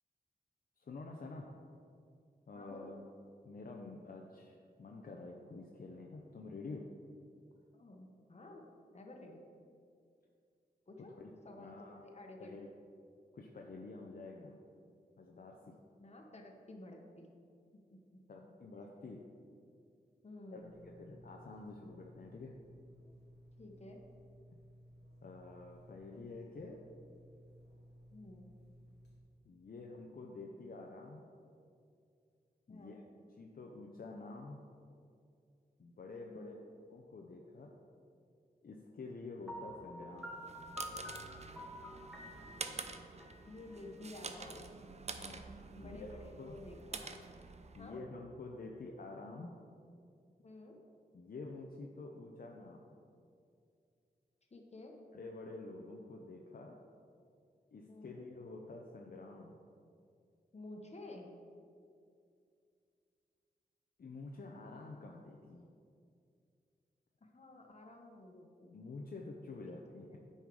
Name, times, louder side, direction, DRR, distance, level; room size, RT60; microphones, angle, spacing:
voice 1, 0.8-1.5 2.5-3.0 3.4-6.8 11.0-11.3 11.6-12.0 12.4-12.7 13.3-14.6 15.2-15.8 18.3-19.2 20.5-22.5 25.2-26.8 29.5-31.2 32.7-33.0 33.4-34.6 35.8-36.5 36.9-37.7 38.6-40.4 45.2-45.4 45.8-46.1 46.4-46.5 47.7-49.6 51.1-53.0 55.1-56.8 57.7-59.6 64.0-65.7 68.7-70.2, left 3 dB, 60° left, 0 dB, 0.7 m, -48 dB
voice 2, 2.5-2.9 7.7-8.6 8.9-9.4 10.9-11.1 11.4-12.6 16.0-17.3 17.9-18.4 20.2-20.8 23.6-24.0 28.1-28.5 32.7-33.0 36.3-36.6 43.4-44.6 45.7-47.2 47.8-48.0 50.4-50.8 54.5-54.9 57.9-58.2 60.5-61.3 67.2-68.8 69.6-69.8, left 2 dB, 40° left, 1 dB, 1.2 m, -52 dB
sound 1, 20.6-29.2, equal, 85° left, 1.5 m, -59 dB
Piano, 39.5-44.3, left 1 dB, ahead, 1.2 m, -49 dB
sound 2, 40.3-48.0, right 4 dB, 40° right, 0.5 m, -48 dB
9.3 x 5.7 x 4.8 m, 2.4 s
wide cardioid pair, 90°, 17 cm